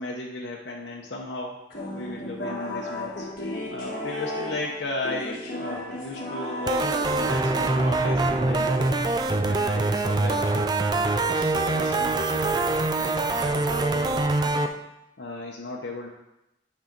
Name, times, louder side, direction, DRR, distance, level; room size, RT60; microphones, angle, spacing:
voice 1, 0.0-1.6 1.9-3.3 3.7-9.1 9.4-10.8 11.2-12.7 12.9-14.7 15.2-16.1, left 2 dB, 70° left, -2 dB, 0.9 m, -36 dB
sound 1, 1.7-9.1, left 1 dB, 50° left, 1.7 m, -35 dB
sound 2, 6.7-14.7, right 2 dB, 20° right, 0.4 m, -24 dB
8.8 x 5.6 x 3.9 m, 0.92 s
head